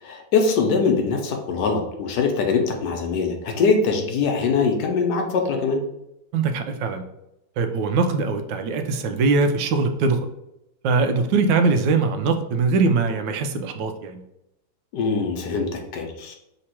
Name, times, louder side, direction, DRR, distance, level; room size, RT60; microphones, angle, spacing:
voice 1, 0.0-5.8 14.9-16.4, left 4 dB, 75° left, 3 dB, 1.3 m, -22 dB
voice 2, 6.3-7.0 7.6-10.3 10.8-14.2, right 4 dB, 85° right, 6 dB, 1.3 m, -22 dB
3.4 x 2.9 x 4.4 m, 0.86 s
omnidirectional pair, 1.9 m